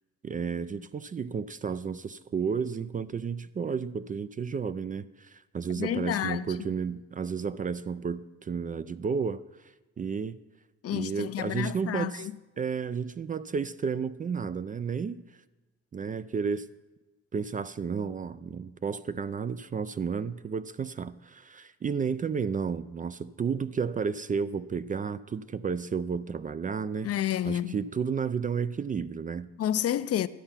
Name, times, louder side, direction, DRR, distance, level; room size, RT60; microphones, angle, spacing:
voice 1, 0.2-9.4 10.0-10.4 10.9-12.3 12.6-15.2 15.9-16.7 17.3-27.1 27.4-29.5, right 6 dB, 30° right, 0.3 m, -32 dB
voice 2, 5.8-6.5 10.8-12.3 27.0-27.8 29.6-30.3, left 11 dB, 50° left, 0.5 m, -30 dB
12.5 x 8.8 x 5.7 m
cardioid pair, 90°, 30 cm